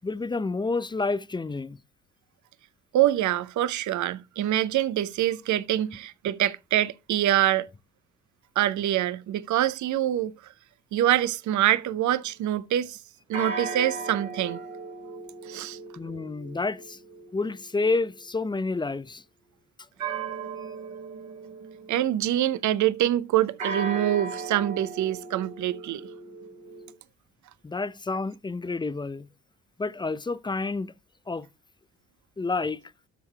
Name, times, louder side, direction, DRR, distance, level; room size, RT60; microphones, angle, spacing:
voice 1, 0.0-1.8 16.0-17.0 17.3-19.2 27.6-29.3 29.8-30.9 31.3-31.5 32.4-32.8, left 3 dB, 10° left, 0.5 m, -29 dB
voice 2, 2.9-7.7 8.6-10.3 10.9-13.0 13.3-14.6 15.4-15.8 21.9-26.1, right 12 dB, 45° right, 0.7 m, -25 dB
sound 1, 11.7-12.2 13.3-18.2 20.0-22.4 23.6-26.9, right 4 dB, 85° right, 1.7 m, -37 dB
14.0 x 7.2 x 2.3 m
figure-of-eight pair, 45°, 40 cm